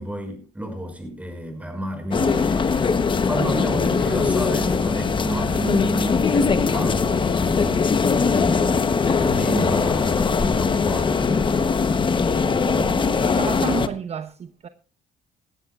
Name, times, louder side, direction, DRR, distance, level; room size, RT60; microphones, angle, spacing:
voice 1, 0.0-8.0 8.3-11.7, right 1 dB, 10° right, 5.9 m, -31 dB
sound 1, 2.1-13.9, left 5 dB, 30° left, 1.1 m, -21 dB
voice 2, 12.6-13.0 13.3-14.7, right 7 dB, 40° right, 0.9 m, -31 dB
18.5 x 15.0 x 2.5 m
cardioid pair, 110°, 17 cm